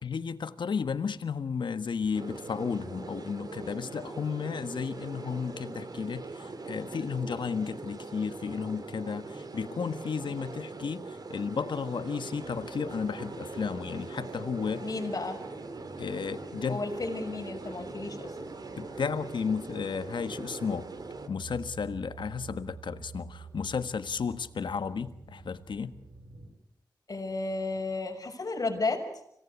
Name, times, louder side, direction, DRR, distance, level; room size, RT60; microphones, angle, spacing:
voice 1, 0.0-14.9 16.0-16.8 18.8-20.9 21.3-25.9, left 6 dB, 80° left, 11 dB, 1.5 m, -33 dB
sound 1, 2.1-21.3, right 3 dB, 55° right, 2.8 m, -41 dB
sound 2, 12.3-26.5, right 4 dB, 80° right, 5.2 m, -49 dB
voice 2, 14.8-15.4 16.7-18.3 27.1-29.1, left 3 dB, 50° left, 3 dB, 6.4 m, -33 dB
26.5 x 18.5 x 8.5 m, 0.78 s
cardioid pair, 65°, 8 cm